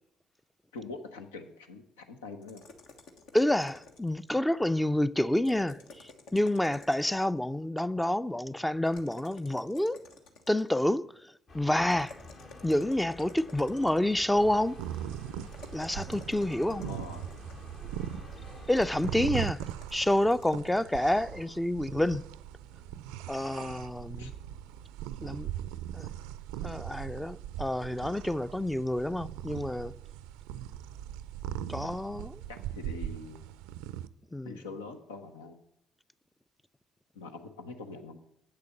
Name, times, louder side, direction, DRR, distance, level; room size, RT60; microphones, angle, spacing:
voice 1, 0.7-2.6 16.7-17.2 24.2-24.3 32.5-33.4 34.4-35.6 37.1-38.3, left 3 dB, 90° left, 1.0 m, -44 dB
sound 1, 2.4-4.3 5.3-7.4 8.8-10.8 11.9-14.2 15.5-17.7 18.7-20.9, left 3 dB, 70° left, 1.3 m, -52 dB
voice 2, 3.3-10.0 10.5-12.2 12.6-14.8 15.7-16.8 18.7-19.6 19.9-22.2 23.3-24.3 25.2-25.5 25.9-26.1 26.6-30.0 31.7-32.4 34.3-34.6, left 1 dB, 10° left, 0.4 m, -28 dB
sound 2, 11.5-19.3, left 2 dB, 50° left, 1.6 m, -49 dB
sound 3, 14.4-34.1, right 11 dB, 80° right, 0.4 m, -40 dB
8.2 x 6.8 x 6.6 m
hypercardioid pair, 60°, 0 cm